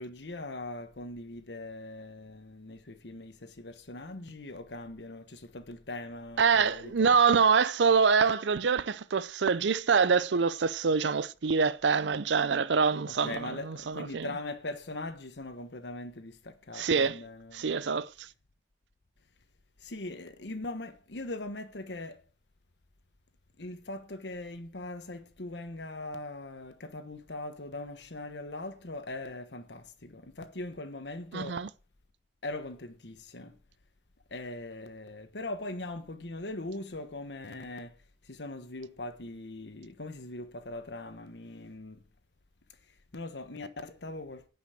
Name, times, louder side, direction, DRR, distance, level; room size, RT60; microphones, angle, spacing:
voice 1, 0.0-7.2 13.1-17.7 19.8-22.2 23.6-31.6 32.4-33.6 34.3-38.0 38.2-42.0 43.1-44.5, left 2 dB, 70° left, 1.2 m, -41 dB
voice 2, 6.4-14.3 16.7-17.2 17.5-18.3 31.3-31.7, right 5 dB, 80° right, 0.5 m, -25 dB
10.0 x 5.6 x 7.9 m
head